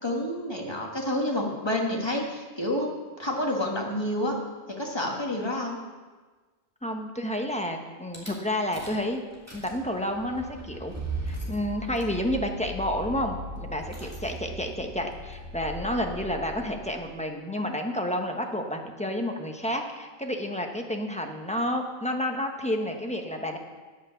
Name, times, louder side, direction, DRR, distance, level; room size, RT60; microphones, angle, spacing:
voice 1, 0.0-4.4 4.7-5.8, left 1 dB, 25° left, -1 dB, 1.9 m, -29 dB
voice 2, 6.8-9.2 9.5-10.9 11.2-23.6, left 1 dB, 5° left, 3 dB, 1.1 m, -30 dB
Rattle / Car / Engine starting, 8.1-8.3 8.7-9.1 9.3-17.1, right 1 dB, 15° right, 2.4 m, -38 dB
9.3 x 9.3 x 7.1 m, 1.4 s
omnidirectional pair, 1.1 m